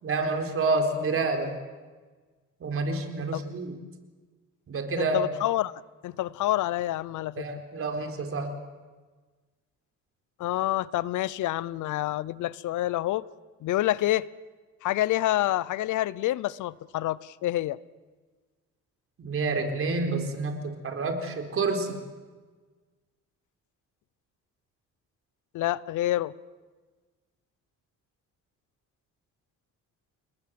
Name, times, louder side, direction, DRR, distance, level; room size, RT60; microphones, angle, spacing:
voice 1, 0.0-1.5 2.6-3.7 4.7-5.3 7.4-8.5 19.2-22.0, right 3 dB, 45° right, 4.2 m, -28 dB
voice 2, 5.0-5.7 6.0-7.4 10.4-13.3 13.6-14.3 14.8-17.8 25.5-26.3, left 15 dB, 75° left, 0.8 m, -27 dB
30.0 x 20.0 x 7.8 m
cardioid pair, 130°, 30 cm